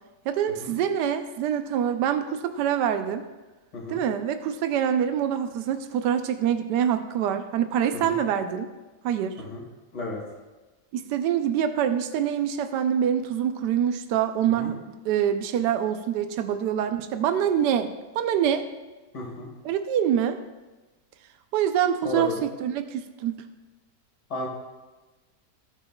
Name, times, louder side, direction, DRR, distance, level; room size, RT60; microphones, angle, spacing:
voice 1, 0.3-3.2 3.9-8.7 9.0-9.4 10.9-18.6 19.6-20.4 21.5-23.4, right 9 dB, 85° right, 9 dB, 1.2 m, -25 dB
voice 2, 19.1-19.5 22.0-22.4 24.3-24.5, left 1 dB, 85° left, -2 dB, 2.8 m, -33 dB
17.5 x 7.7 x 2.3 m, 1.2 s
omnidirectional pair, 1.8 m